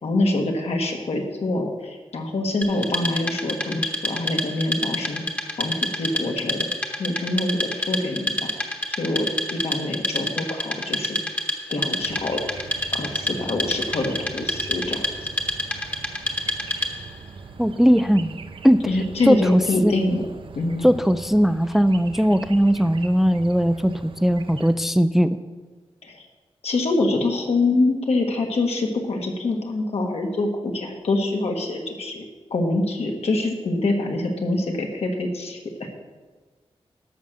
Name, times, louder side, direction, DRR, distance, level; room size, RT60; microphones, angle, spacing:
voice 1, 0.0-5.2 5.6-6.7 7.0-8.5 8.9-11.2 11.7-12.4 12.9-15.0 18.9-20.2 20.5-20.9 26.0-26.2 26.6-32.2 32.5-35.9, left 2 dB, 75° left, 2 dB, 1.7 m, -25 dB
Wood, 2.6-17.2, left 1 dB, 15° left, 1.0 m, -28 dB
sound 1, 12.0-24.8, right 4 dB, 55° right, 0.6 m, -41 dB
voice 2, 17.6-18.3 18.6-18.9 19.3-19.9 20.8-25.4, equal, 5° right, 12 dB, 0.3 m, -19 dB
12.0 x 6.7 x 6.4 m, 1.3 s
wide cardioid pair, 175°, 11 cm